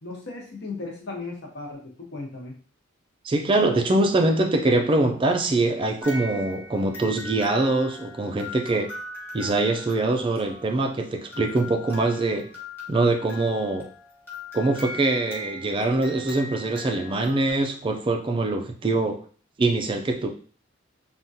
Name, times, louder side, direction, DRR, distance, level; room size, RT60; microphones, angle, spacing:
voice 1, 0.0-2.5, left 3 dB, 60° left, 0.9 m, -36 dB
voice 2, 3.2-8.9 9.3-12.5 12.9-13.9 14.5-19.2 19.6-20.3, right 2 dB, 25° right, 0.4 m, -23 dB
sound 1, 6.0-17.5, left 2 dB, 10° left, 1.2 m, -40 dB
3.6 x 2.4 x 2.7 m
head